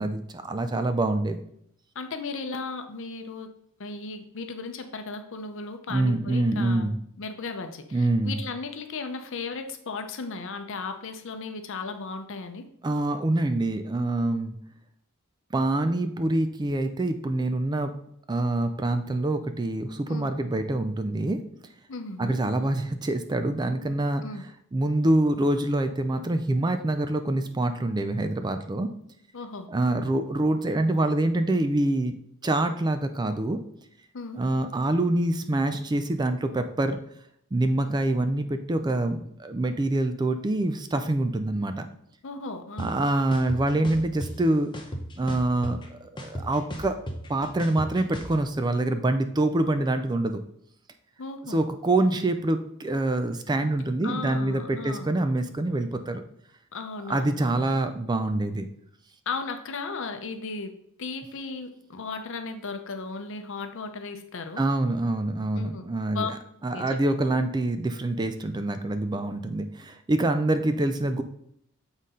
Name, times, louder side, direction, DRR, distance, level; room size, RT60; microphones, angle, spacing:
voice 1, 0.0-1.4 5.9-7.0 7.9-8.4 12.8-14.6 15.5-17.9 18.3-21.4 22.2-24.2 24.7-28.9 29.7-32.1 32.4-33.6 34.4-37.0 37.5-41.9 42.8-44.7 45.2-47.0 47.3-50.4 51.5-56.2 57.1-58.7 64.6-66.4 66.6-71.2, right 2 dB, 20° right, 8 dB, 0.4 m, -25 dB
voice 2, 1.9-3.5 3.8-6.9 7.2-12.6 20.1-20.3 21.9-22.3 24.2-24.4 29.3-29.7 34.1-34.4 42.2-43.0 51.2-51.6 54.0-55.1 56.7-57.6 59.3-60.7 61.0-64.6 65.5-65.8 66.1-66.3 66.7-67.0, left 4 dB, 60° left, 7 dB, 0.7 m, -36 dB
sound 1, 42.8-42.9 43.3-44.3 44.7-45.9 46.2-48.3, equal, 20° left, 0.7 m, -35 dB
7.3 x 4.0 x 3.7 m, 0.71 s
head